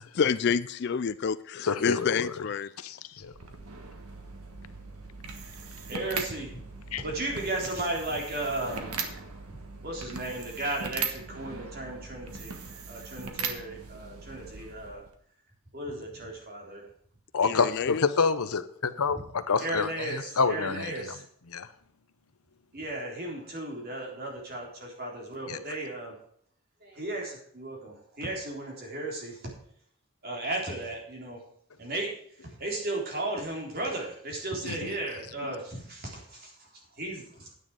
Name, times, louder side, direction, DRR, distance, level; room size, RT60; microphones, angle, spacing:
voice 1, 0.1-2.7 17.4-18.0, left 6 dB, 50° left, 15 dB, 0.4 m, -28 dB
voice 2, 1.6-2.3 2.8-3.3 6.9-7.0 17.3-19.9 20.4-20.9 21.5-21.7 25.5-25.6 34.6-34.9, left 5 dB, 85° left, 13 dB, 0.8 m, -27 dB
sound 1, 3.2-15.2, right 5 dB, 85° right, 1.5 m, -39 dB
voice 3, 5.9-6.6 7.0-8.9 9.5-9.6 9.8-12.6 12.9-15.0 15.7-16.8 17.4-17.6 19.1-19.2 19.6-21.2 22.7-26.2 26.8-29.5 30.2-31.4 31.8-37.6, right 1 dB, 45° right, -1 dB, 3.7 m, -35 dB
9.8 x 9.4 x 4.9 m, 0.64 s
head